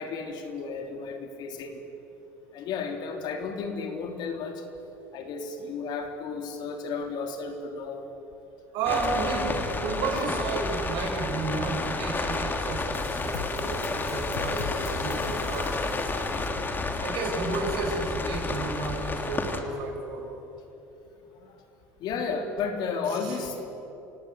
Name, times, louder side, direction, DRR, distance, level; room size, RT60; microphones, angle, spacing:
voice 1, 0.0-1.8 2.5-4.6 5.1-8.1 8.9-9.3 9.7-9.8 16.6-16.8 21.4-21.6 22.0-23.6, left 5 dB, 60° left, 4 dB, 3.6 m, -33 dB
voice 2, 8.7-16.3 17.0-20.3 23.0-23.4, right 4 dB, 70° right, 1 dB, 6.8 m, -32 dB
sound 1, 8.9-19.6, left 3 dB, 25° left, 3.0 m, -30 dB
sound 2, 12.9-17.1, left 8 dB, 90° left, 1.1 m, -41 dB
29.0 x 17.5 x 8.4 m, 3.0 s
hypercardioid pair, 80°, 8 cm